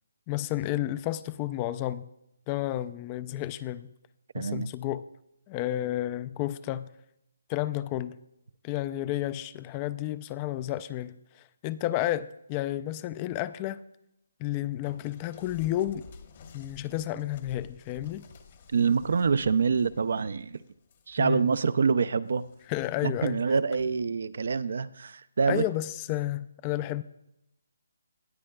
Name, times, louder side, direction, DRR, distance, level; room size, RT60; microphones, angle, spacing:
voice 1, 0.3-2.1 2.5-3.9 4.4-5.0 5.5-6.9 7.5-8.2 8.6-13.8 14.4-16.1 16.5-18.2 21.2-21.4 22.7-23.4 25.5-27.0, left 14 dB, 20° left, 0.3 m, -31 dB
voice 2, 4.3-4.7 18.7-20.6 21.1-22.4 23.0-25.6, right 5 dB, 60° right, 0.4 m, -26 dB
sound 1, 14.8-21.8 22.3-22.9 23.8-24.1, left 6 dB, 40° left, 1.1 m, -53 dB
19.5 x 7.5 x 2.3 m
hypercardioid pair, 160°, 0 cm